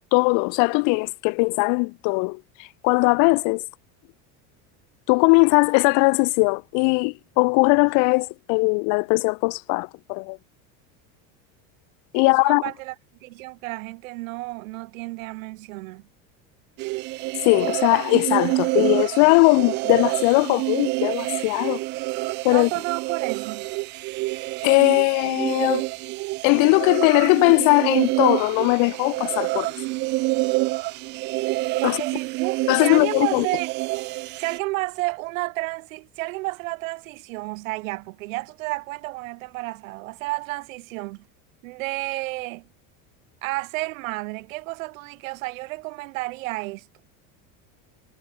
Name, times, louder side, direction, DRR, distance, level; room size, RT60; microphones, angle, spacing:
voice 1, 0.1-2.4 2.8-3.6 5.1-10.4 12.1-12.6 17.4-21.8 22.4-22.7 24.6-25.8 26.4-29.7 31.8-32.0 32.7-33.5, left 35 dB, 50° left, 1.2 m, -19 dB
voice 2, 12.1-13.0 13.2-16.1 22.5-23.7 31.8-33.7 34.4-41.3 41.6-42.7 43.4-46.9, right 22 dB, 90° right, 1.8 m, -31 dB
sound 1, 16.8-34.6, right 22 dB, 30° right, 0.4 m, -27 dB
cardioid pair, 170°, 39 cm